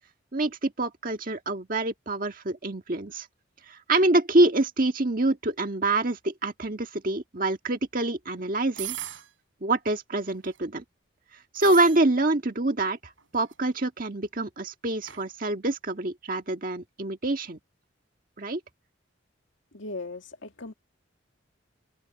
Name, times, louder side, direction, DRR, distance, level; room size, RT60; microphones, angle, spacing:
voice 1, 0.3-3.3 3.7-9.0 9.6-10.8 11.5-17.6 18.4-18.6, right 2 dB, 45° right, 1.7 m, -26 dB
sound 1, 8.8-9.3 10.2-10.6 11.5-12.0 13.2-13.5 15.0-15.2, right 13 dB, 85° right, 4.6 m, -38 dB
voice 2, 19.7-20.7, left 2 dB, 75° left, 2.3 m, -38 dB
open air
head